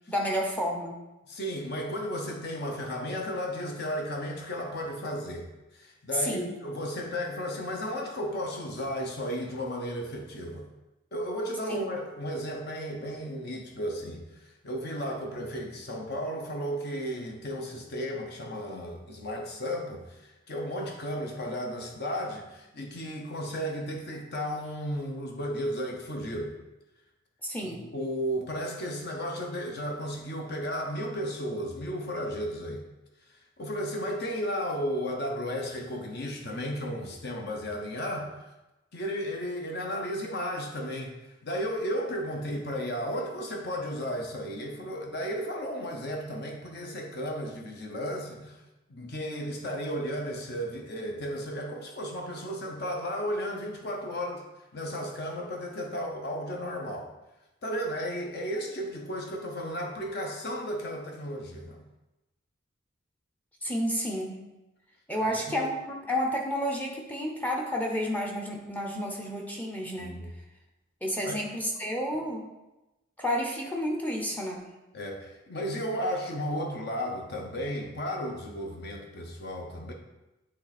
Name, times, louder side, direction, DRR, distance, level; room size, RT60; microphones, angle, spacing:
voice 1, 0.1-1.0 6.2-6.5 11.7-11.8 27.4-27.8 63.6-64.4 65.1-65.7 66.1-70.2 71.0-72.5 73.2-74.7, equal, 5° left, -1 dB, 0.7 m, -30 dB
voice 2, 1.3-5.5 5.7-10.7 11.1-26.5 27.6-32.8 33.6-38.4 38.9-48.6 48.9-54.4 54.7-57.1 57.6-61.8 65.2-65.7 70.0-70.3 71.2-71.3 74.9-79.9, equal, 50° left, 1 dB, 0.8 m, -34 dB
8.9 x 3.3 x 4.1 m, 1.0 s
head